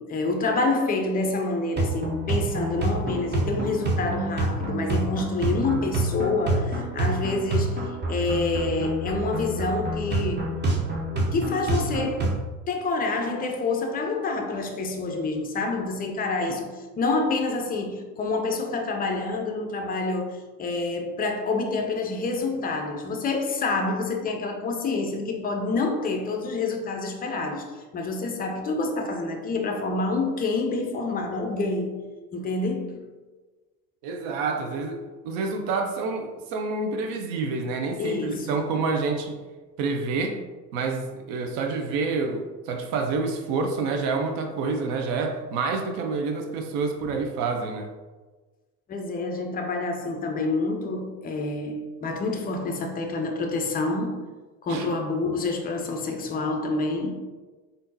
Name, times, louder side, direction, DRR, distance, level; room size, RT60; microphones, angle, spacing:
voice 1, 0.0-10.5 11.3-31.9 32.3-33.0 38.0-38.5 48.9-54.2 54.6-57.1, left 3 dB, 20° left, 0.4 m, -27 dB
sound 1, 1.8-12.4, right 2 dB, 20° right, 0.7 m, -27 dB
voice 2, 34.0-39.4 39.8-40.4 40.7-47.9 54.7-55.0, right 4 dB, 60° right, 0.7 m, -28 dB
3.5 x 2.7 x 2.7 m
hypercardioid pair, 75°, 48 cm